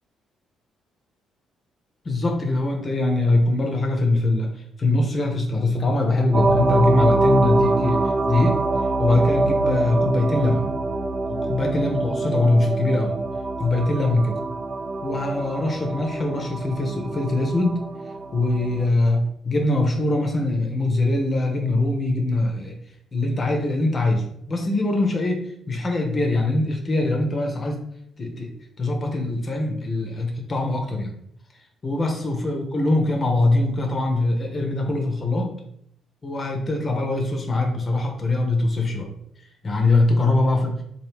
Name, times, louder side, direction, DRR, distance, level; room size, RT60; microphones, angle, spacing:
voice 1, 2.0-8.6 9.0-10.7 11.3-13.2 13.6-14.4 15.0-17.8 18.3-22.7 23.1-27.8 28.2-31.2 31.8-35.6 36.2-39.1 39.6-40.8, left 2 dB, 35° left, 2 dB, 0.6 m, -22 dB
sound 1, 6.3-18.9, right 2 dB, 50° right, 0.3 m, -24 dB
3.2 x 2.3 x 3.1 m, 0.71 s
figure-of-eight pair, 45°, 0 cm